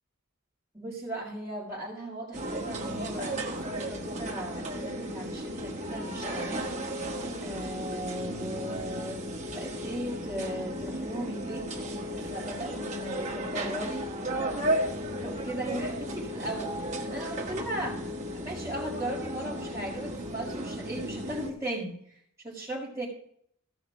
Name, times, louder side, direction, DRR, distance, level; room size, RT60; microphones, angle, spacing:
voice 1, 0.7-6.6 7.4-11.7 12.2-14.0 15.2-18.0 18.3-23.1, right 1 dB, 15° right, -10 dB, 4.5 m, -37 dB
sound 1, 2.3-21.5, right 1 dB, 35° right, 1.8 m, -34 dB
16.0 x 5.7 x 5.2 m, 0.63 s
head